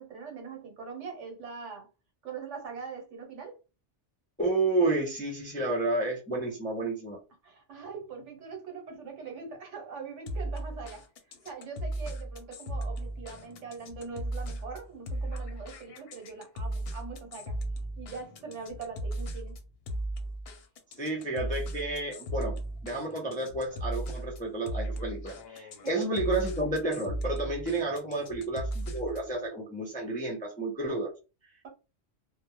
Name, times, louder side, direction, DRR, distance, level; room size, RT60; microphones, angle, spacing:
voice 1, 0.0-1.9 2.2-3.6 7.4-11.0 11.4-17.6 18.0-19.6 25.8-26.1, right 5 dB, 75° right, 1.1 m, -42 dB
voice 2, 4.4-7.2 21.0-22.6 22.8-31.1, right 2 dB, 10° left, 0.4 m, -31 dB
sound 1, 10.3-29.3, right 1 dB, 65° left, 0.7 m, -37 dB
2.3 x 2.0 x 2.9 m
omnidirectional pair, 1.2 m